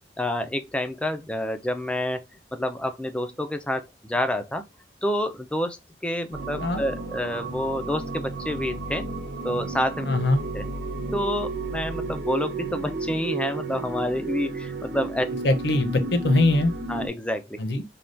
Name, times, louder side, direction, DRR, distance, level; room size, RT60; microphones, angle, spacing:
voice 1, 0.2-2.2 2.5-4.6 5.0-5.8 6.0-9.1 9.4-10.1 10.5-10.7 11.1-15.3 16.9-17.6, left 1 dB, 5° left, 0.4 m, -28 dB
sound 1, 6.3-17.1, right 3 dB, 75° right, 0.6 m, -32 dB
voice 2, 10.1-10.4 15.4-16.7 17.6-17.8, left 2 dB, 70° left, 0.6 m, -22 dB
3.4 x 2.3 x 2.5 m
head